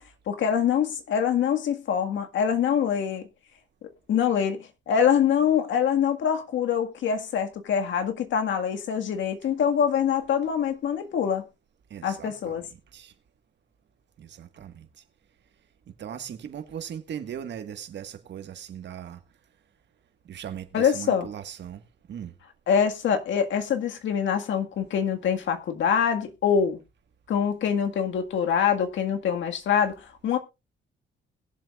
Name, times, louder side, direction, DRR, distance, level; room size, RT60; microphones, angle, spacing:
voice 1, 0.3-3.3 3.8-11.4 12.0-12.6 20.7-21.3 22.7-26.8 27.3-30.4, left 8 dB, 70° left, 1.9 m, -24 dB
voice 2, 11.9-13.1 14.2-14.9 16.0-19.2 20.3-21.8 22.1-22.3, right 9 dB, 60° right, 1.7 m, -38 dB
21.0 x 7.5 x 2.5 m
cardioid pair, 90°, 20 cm